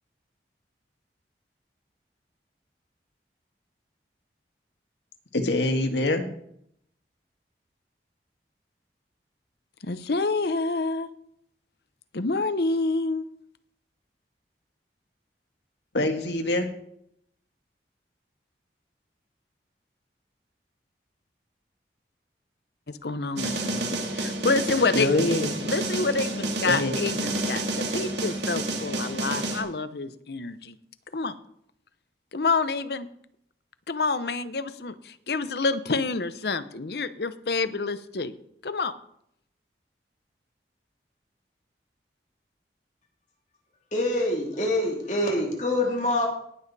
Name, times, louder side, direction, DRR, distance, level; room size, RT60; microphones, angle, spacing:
voice 1, 5.3-6.2 15.9-16.7 24.9-25.5 26.7-27.0, left 2 dB, 85° left, 5 dB, 1.7 m, -24 dB
voice 2, 9.8-11.1 12.1-13.3 22.9-25.1 25.7-30.8 31.1-31.3 32.3-33.1 33.9-38.3 38.6-38.9, left 3 dB, 70° left, 13 dB, 0.8 m, -28 dB
sound 1, 23.4-29.6, right 2 dB, 85° right, 2.7 m, -29 dB
voice 3, 43.9-46.3, left 1 dB, 45° left, 0 dB, 2.9 m, -25 dB
18.5 x 7.2 x 4.2 m, 0.71 s
head